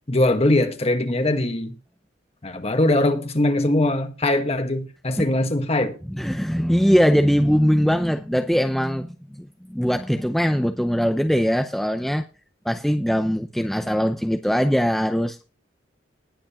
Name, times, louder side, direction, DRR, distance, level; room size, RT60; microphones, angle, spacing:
voice 1, 0.1-1.8 2.4-6.0, left 1 dB, 35° left, 1.5 m, -21 dB
voice 2, 6.1-12.2 12.7-15.4, equal, ahead, 0.6 m, -21 dB
20.0 x 7.7 x 3.0 m
head